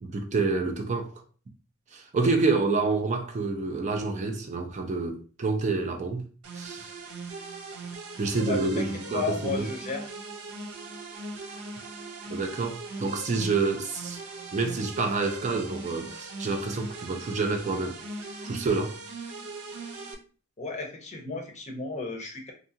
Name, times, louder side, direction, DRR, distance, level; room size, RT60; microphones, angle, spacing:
voice 1, 0.0-1.1 1.9-6.2 6.5-6.9 8.2-9.7 12.3-14.2 14.5-18.0 18.4-19.0, right 3 dB, 35° right, 0.4 m, -28 dB
sound 1, 6.4-20.1, right 3 dB, 90° right, 0.5 m, -40 dB
voice 2, 8.5-8.8 9.1-10.0 20.6-22.5, left 4 dB, 35° left, 0.6 m, -33 dB
2.7 x 2.3 x 2.7 m
head